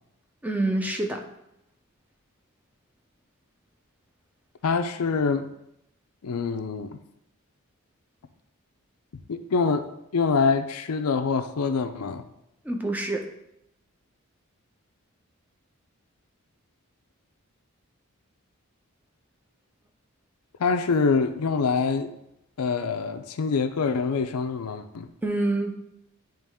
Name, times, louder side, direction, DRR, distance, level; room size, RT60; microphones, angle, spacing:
voice 1, 0.4-1.2 12.6-13.3 25.2-25.7, right 2 dB, 5° right, 3 dB, 0.5 m, -26 dB
voice 2, 4.6-5.5 6.2-7.0 9.3-12.2 20.6-22.1 22.6-25.1, left 5 dB, 85° left, 9 dB, 0.5 m, -25 dB
8.9 x 3.1 x 3.5 m, 0.82 s
head